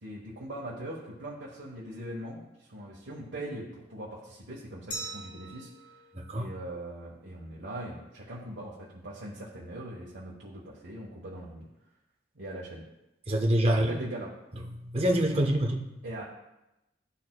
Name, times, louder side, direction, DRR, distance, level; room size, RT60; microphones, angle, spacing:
voice 1, 0.0-5.7 6.3-11.7 12.3-12.8 13.6-14.3 16.0-16.2, right 1 dB, 85° right, -5 dB, 1.2 m, -41 dB
Glass, 4.9-7.6, right 2 dB, 75° left, 1.2 m, -44 dB
voice 2, 6.1-6.5 13.3-14.0 14.8-15.8, right 1 dB, 30° right, 2 dB, 0.7 m, -25 dB
12.5 x 4.2 x 2.2 m, 0.93 s
head